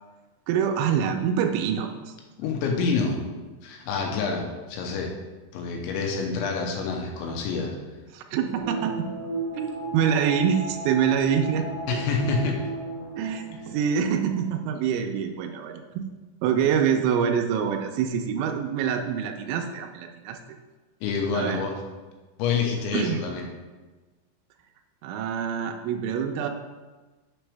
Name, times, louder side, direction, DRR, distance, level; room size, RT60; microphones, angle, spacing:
voice 1, 0.5-2.2 8.1-9.1 9.5-12.0 13.2-16.0 16.4-20.4 21.3-21.6 22.9-23.2 25.0-26.5, right 8 dB, 85° right, 3 dB, 2.9 m, -26 dB
voice 2, 2.4-3.2 3.6-5.1 5.5-7.8 11.9-12.6 21.0-21.8 22.4-23.5, left 4 dB, 80° left, 1 dB, 3.1 m, -27 dB
sound 1, 8.6-14.5 14.8-14.9, right 2 dB, 45° left, 2.8 m, -35 dB
7.0 x 6.1 x 3.3 m, 1.2 s
omnidirectional pair, 5.5 m